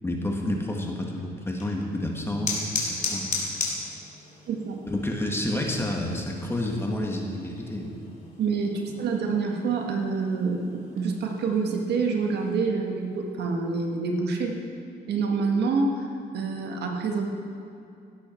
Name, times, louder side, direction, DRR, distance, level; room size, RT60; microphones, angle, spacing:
voice 1, 0.0-3.6 4.8-8.0, left 1 dB, 15° left, 0 dB, 1.7 m, -30 dB
sound 1, 1.4-12.6, left 3 dB, 45° left, 2.9 m, -37 dB
voice 2, 4.5-4.8 8.4-14.5 15.1-16.0 16.3-17.3, right 4 dB, 70° right, 2 dB, 1.6 m, -27 dB
17.0 x 8.2 x 4.5 m, 2.6 s
cardioid pair, 100°, 18 cm